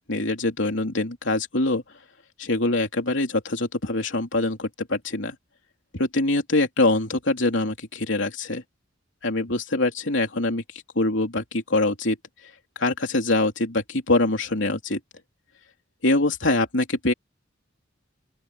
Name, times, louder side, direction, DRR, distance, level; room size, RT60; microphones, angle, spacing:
voice 1, 0.1-1.8 2.4-5.4 5.9-8.6 9.2-10.6 11.0-12.2 12.8-15.0 16.0-17.1, left 2 dB, 70° left, 3.6 m, -24 dB
open air
head